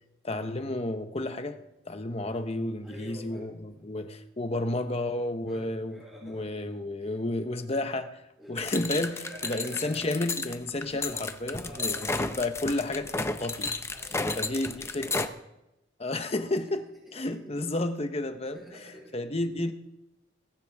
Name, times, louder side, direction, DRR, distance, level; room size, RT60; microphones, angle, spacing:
voice 1, 0.2-8.2 8.5-13.7 14.4-15.3 16.0-16.9 17.1-18.6 19.1-19.7, left 2 dB, 35° left, 1.0 m, -32 dB
voice 2, 2.8-4.0 5.5-6.7 7.0-7.1 8.4-8.7 9.2-10.0 11.5-12.2 13.9-15.3 16.4-16.8 17.1-17.4 18.4-19.2, equal, 5° right, 4.4 m, -48 dB
sound 1, 8.6-15.3, left 3 dB, 15° left, 0.6 m, -32 dB
20.5 x 13.0 x 3.6 m
head